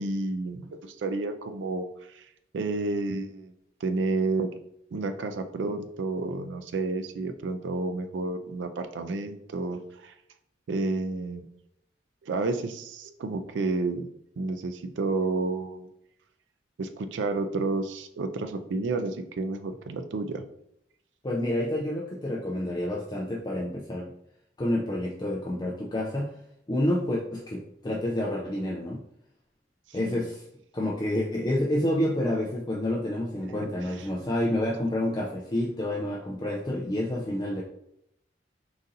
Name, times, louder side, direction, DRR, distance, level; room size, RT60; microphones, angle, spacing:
voice 1, 0.0-2.3 2.5-3.5 3.8-4.5 4.9-10.1 10.7-11.5 12.2-14.1 14.4-15.9 16.8-20.4 29.9-30.2 33.9-34.1, right 3 dB, 85° right, 7 dB, 0.4 m, -30 dB
voice 2, 21.2-24.1 24.6-26.4 26.7-29.0 29.9-30.4 30.7-37.6, left 1 dB, 20° left, -3 dB, 0.4 m, -29 dB
3.9 x 2.6 x 3.8 m, 0.77 s
head